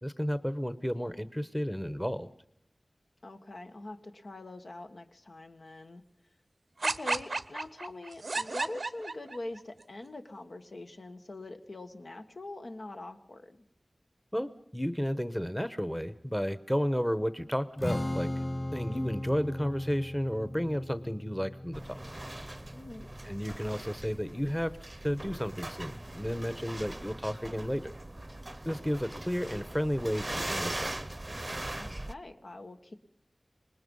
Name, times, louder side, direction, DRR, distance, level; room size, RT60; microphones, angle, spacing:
voice 1, 0.0-2.3 14.3-18.3 18.7-22.0 23.2-24.7 25.0-27.9 28.6-30.9, equal, 10° left, 13 dB, 1.0 m, -32 dB
voice 2, 3.2-6.0 6.8-13.6 22.7-23.1 31.7-33.0, left 2 dB, 70° left, 5 dB, 1.5 m, -44 dB
sound 1, 6.8-9.6, right 3 dB, 70° right, 0.7 m, -33 dB
Strum, 17.8-24.1, left 1 dB, 40° left, 3.1 m, -37 dB
sound 2, 21.7-32.1, right 1 dB, 30° right, 0.7 m, -40 dB
26.0 x 20.0 x 5.5 m, 0.69 s
wide cardioid pair, 55°, 0 cm